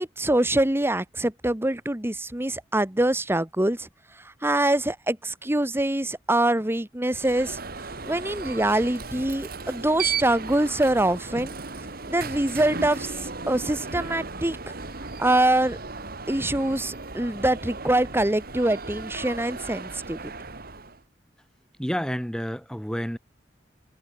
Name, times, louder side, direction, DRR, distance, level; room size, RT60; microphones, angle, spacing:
voice 1, 0.0-3.9 4.4-7.6 8.0-11.5 12.1-14.6 15.2-15.8 16.3-20.3, right 1 dB, 15° right, 1.4 m, -24 dB
Alarm, 7.1-21.0, right 4 dB, 55° right, 3.2 m, -36 dB
voice 2, 21.8-23.2, equal, 5° left, 4.3 m, -29 dB
head